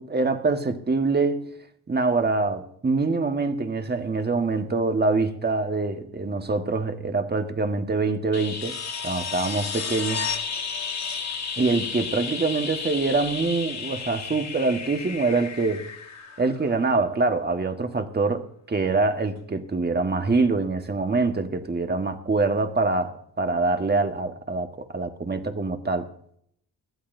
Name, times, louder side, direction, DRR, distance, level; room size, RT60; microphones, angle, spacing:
voice 1, 0.0-1.5 1.9-10.3 11.6-15.9 16.4-26.1, right 3 dB, 25° right, 1.4 m, -25 dB
sound 1, 8.3-17.0 19.4-19.5, left 5 dB, 40° left, 2.1 m, -32 dB
22.5 x 15.0 x 2.6 m
cardioid pair, 105°, 40 cm